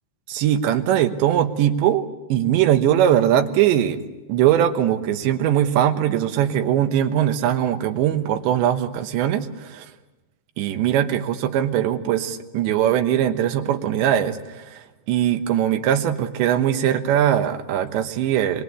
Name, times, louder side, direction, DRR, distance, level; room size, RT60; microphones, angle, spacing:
voice 1, 0.3-4.0 4.3-9.9 10.6-18.6, right 10 dB, 85° right, 7 dB, 3.5 m, -21 dB
25.5 x 23.0 x 8.4 m, 1.1 s
omnidirectional pair, 5.0 m